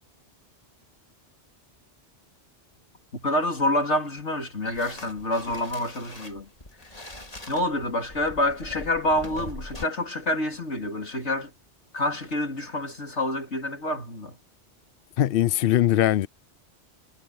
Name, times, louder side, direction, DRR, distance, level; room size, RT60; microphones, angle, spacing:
voice 1, 3.1-6.5 7.5-11.5 11.9-14.4, left 1 dB, 90° left, 3.9 m, -27 dB
sound 1, 4.7-9.9, left 1 dB, 35° left, 2.7 m, -42 dB
voice 2, 15.2-16.3, left 12 dB, 65° left, 0.7 m, -21 dB
omnidirectional pair, 1.1 m